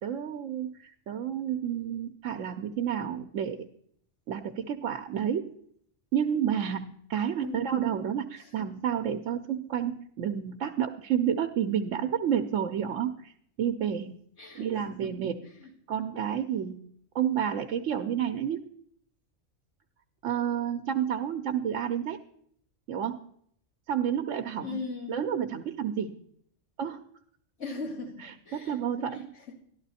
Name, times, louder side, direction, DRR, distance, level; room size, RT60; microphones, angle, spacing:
voice 1, 0.0-3.7 4.3-5.5 6.1-13.3 13.6-14.1 14.5-15.4 15.9-16.8 17.1-18.7 20.2-22.2 22.9-23.3 23.9-24.8 25.1-26.2 26.8-27.0 28.2-29.3, right 9 dB, 80° right, 6 dB, 1.0 m, -30 dB
voice 2, 7.4-7.9 8.4-8.5 14.4-15.1 15.6-15.7 24.6-25.2 27.6-29.5, left 3 dB, 75° left, -3 dB, 2.7 m, -40 dB
12.5 x 12.0 x 4.1 m, 0.66 s
omnidirectional pair, 1.3 m